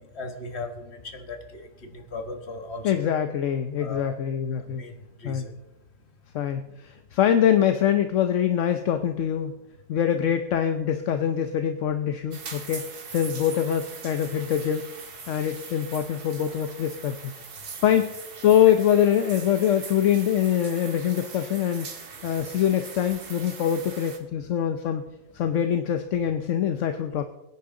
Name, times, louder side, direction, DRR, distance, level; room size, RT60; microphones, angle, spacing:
voice 1, 0.1-3.1 3.8-4.2 4.7-5.5, left 3 dB, 45° left, 5 dB, 1.7 m, -37 dB
voice 2, 2.8-4.8 5.2-5.4 6.3-9.6 9.9-14.9 15.3-17.3 17.8-18.1 18.4-21.9 22.2-25.0 25.3-27.2, left 9 dB, 60° left, 8 dB, 0.9 m, -24 dB
sound 1, 12.3-24.2, right 5 dB, 80° right, 2.1 m, -41 dB
23.0 x 9.7 x 3.8 m, 0.94 s
omnidirectional pair, 1.6 m